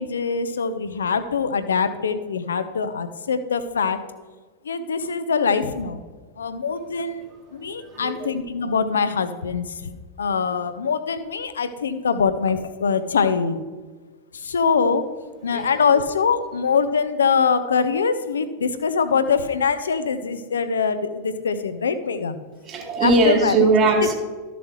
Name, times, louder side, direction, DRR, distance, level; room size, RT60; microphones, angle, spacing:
voice 1, 0.0-4.0 4.6-6.0 6.4-7.2 7.5-9.8 10.2-13.6 14.3-15.1 15.4-22.4 23.0-23.6, left 5 dB, 70° left, 12 dB, 0.7 m, -23 dB
voice 2, 7.8-8.3 15.5-15.7 16.0-16.1 22.6-24.1, right 3 dB, 35° right, 0 dB, 1.9 m, -20 dB
13.0 x 7.0 x 3.1 m, 1.4 s
figure-of-eight pair, 90°, 0 cm